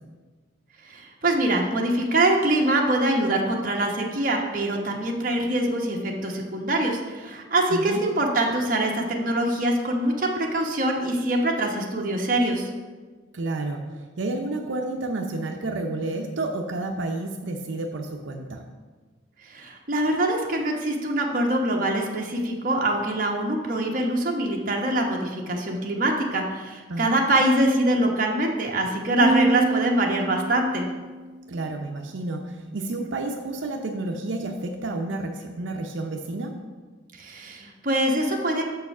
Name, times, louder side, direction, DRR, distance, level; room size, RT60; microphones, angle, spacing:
voice 1, 0.9-12.7 19.4-30.9 37.2-38.6, right 1 dB, 45° right, 0 dB, 1.0 m, -24 dB
voice 2, 13.3-13.8 14.2-18.6 26.9-27.2 31.5-36.5, right 2 dB, 80° right, 3 dB, 0.6 m, -30 dB
sound 1, 29.2-31.6, right 3 dB, 25° right, 0.3 m, -27 dB
6.6 x 4.7 x 5.9 m, 1.4 s
head